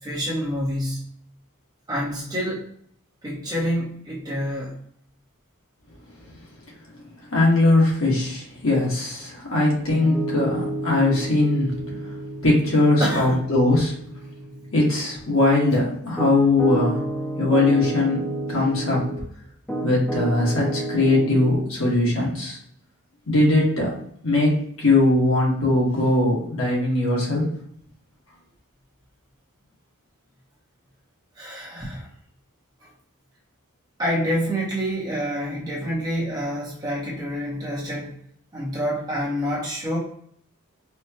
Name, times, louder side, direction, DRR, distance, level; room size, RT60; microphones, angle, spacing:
voice 1, 0.0-1.0 1.9-2.7 3.2-4.8 13.0-13.4 31.4-32.1 32.8-32.9 34.0-38.1 38.5-40.0, equal, 20° right, -5 dB, 0.9 m, -27 dB
voice 2, 7.3-11.7 12.4-13.9 14.7-17.0 17.4-19.1 19.8-22.6 23.3-23.9 24.2-27.4, left 2 dB, 65° left, -4 dB, 1.4 m, -20 dB
Piano, 9.9-19.2 19.7-21.7, right 1 dB, 5° left, 0.5 m, -31 dB
4.5 x 2.2 x 2.8 m, 0.65 s
head